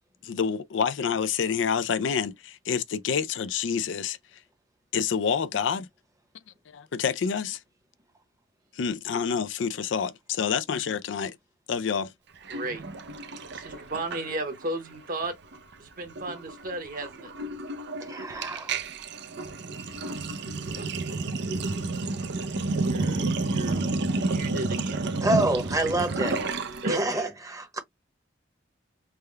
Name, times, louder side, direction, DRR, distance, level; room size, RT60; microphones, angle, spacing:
voice 1, 0.2-4.2 4.9-5.9 6.7-7.6 8.7-11.4 11.7-12.1, left 6 dB, 75° left, 0.4 m, -28 dB
voice 2, 12.5-12.8 13.5-15.3 15.8-17.3 20.7-20.8 22.8-25.1 26.8-27.3, right 2 dB, 50° right, 1.1 m, -35 dB
Sink (filling or washing), 12.5-14.7 15.0-15.3 15.5-26.9, right 3 dB, 65° right, 0.6 m, -30 dB
voice 3, 18.1-18.7 25.2-26.4 26.9-27.8, right 1 dB, 20° right, 0.9 m, -27 dB
3.5 x 2.2 x 3.3 m
head